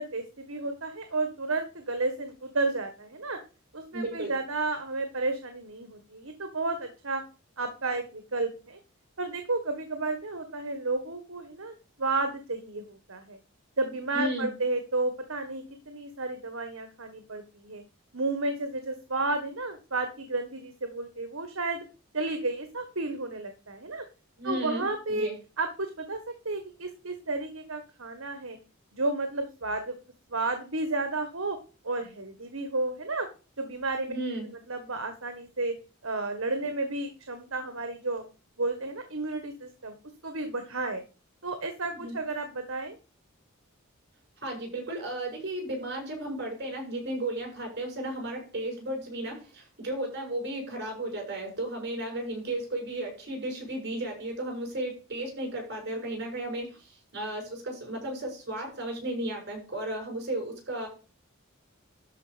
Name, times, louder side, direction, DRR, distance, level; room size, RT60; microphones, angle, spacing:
voice 1, 0.0-3.4 3.7-7.2 7.6-8.8 9.2-13.4 13.8-17.8 18.1-21.9 22.1-24.0 24.4-25.3 25.6-26.2 26.4-28.6 28.9-29.9 30.3-31.6 31.8-33.3 33.6-34.1 34.7-35.7 36.0-38.2 38.6-39.9 40.2-41.0 41.4-43.0, right 3 dB, 65° right, 7 dB, 1.7 m, -32 dB
voice 2, 3.9-4.4 14.1-14.5 24.4-25.4 34.1-34.5 41.9-42.2 44.4-60.9, right 1 dB, 50° right, 1 dB, 7.0 m, -34 dB
12.5 x 5.3 x 5.2 m, 0.34 s
head